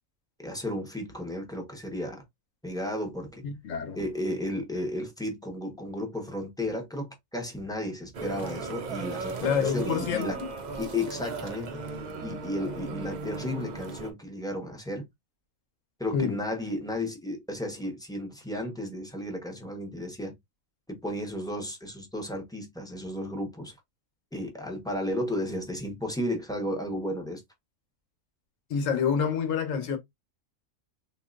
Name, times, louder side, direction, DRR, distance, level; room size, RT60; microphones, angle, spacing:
voice 1, 0.4-2.2 2.6-3.4 3.9-10.4 10.8-11.8 12.2-15.1 16.0-20.4 20.9-23.7 24.3-27.4, left 1 dB, 5° left, 0.8 m, -33 dB
voice 2, 3.4-4.0 9.4-10.5 16.1-16.4 28.7-30.0, left 7 dB, 70° left, 1.3 m, -27 dB
sound 1, 8.1-14.1, right 4 dB, 55° right, 0.5 m, -36 dB
3.8 x 2.8 x 2.5 m
omnidirectional pair, 1.4 m